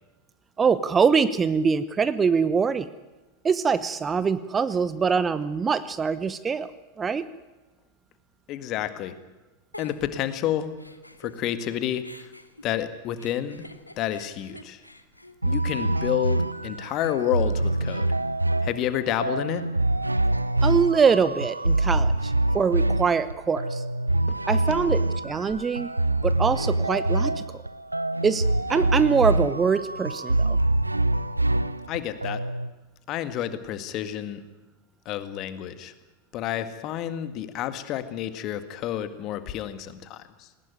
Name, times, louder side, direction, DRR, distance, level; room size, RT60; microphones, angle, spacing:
voice 1, 0.6-2.9 3.4-6.7 7.0-7.2 20.6-23.8 24.5-25.9 26.2-27.6 28.2-30.6, right 5 dB, 20° right, 14 dB, 0.9 m, -23 dB
voice 2, 8.5-9.2 9.8-10.7 11.2-12.3 12.6-13.7 14.0-14.8 15.4-18.1 18.6-19.7 24.3-24.4 31.9-32.4 33.1-34.4 35.1-35.9 36.3-40.5, left 11 dB, 35° left, 11 dB, 1.9 m, -30 dB
Giggle, 9.7-11.7 12.0-16.2, left 1 dB, 85° left, 1.5 m, -48 dB
sound 1, 15.4-32.7, right 2 dB, 85° right, 0.7 m, -25 dB
20.0 x 19.5 x 9.4 m, 1.1 s
figure-of-eight pair, 90°, 0 cm